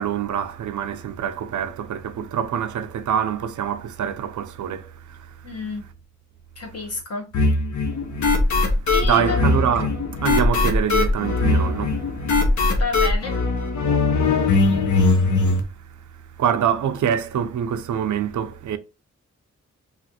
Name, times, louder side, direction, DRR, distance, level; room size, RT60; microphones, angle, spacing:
voice 1, 0.0-5.4 8.2-8.8 9.0-12.4 12.7-12.8 14.3-18.8, right 9 dB, 80° right, 0.4 m, -26 dB
voice 2, 5.4-5.9 6.6-7.3 8.9-9.4 12.8-13.4, left 3 dB, 55° left, 1.0 m, -29 dB
sound 1, 7.3-15.6, left 3 dB, 75° left, 0.7 m, -20 dB
3.1 x 2.4 x 2.8 m
wide cardioid pair, 100°, 29 cm